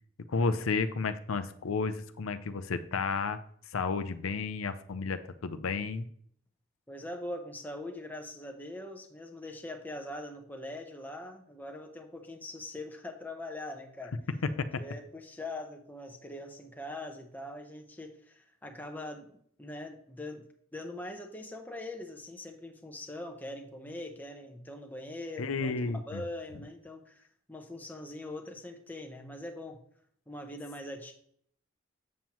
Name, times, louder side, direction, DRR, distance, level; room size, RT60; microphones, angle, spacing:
voice 1, 0.3-3.4 3.7-6.1 25.4-26.2, left 4 dB, 90° left, 11 dB, 0.5 m, -32 dB
voice 2, 6.9-14.1 14.8-20.4 20.7-29.8 30.3-31.1, left 1 dB, 10° left, 3 dB, 0.8 m, -42 dB
7.4 x 7.3 x 3.0 m, 0.65 s
head